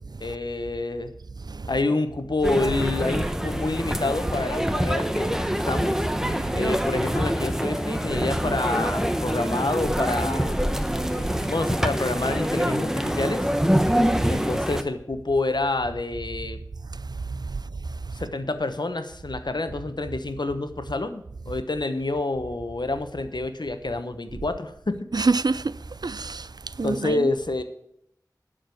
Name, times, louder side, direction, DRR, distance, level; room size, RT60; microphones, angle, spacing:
voice 1, 0.2-1.1 1.7-6.0 6.5-10.6 11.5-13.5 14.3-16.6 18.1-25.1 26.8-27.6, left 2 dB, 80° left, 1.0 m, -28 dB
sound 1, 2.4-14.8, equal, 5° right, 0.9 m, -25 dB
voice 2, 17.3-17.6 25.1-25.7 26.0-27.3, right 3 dB, 65° right, 0.4 m, -27 dB
12.0 x 5.0 x 7.6 m
wide cardioid pair, 40°, 7 cm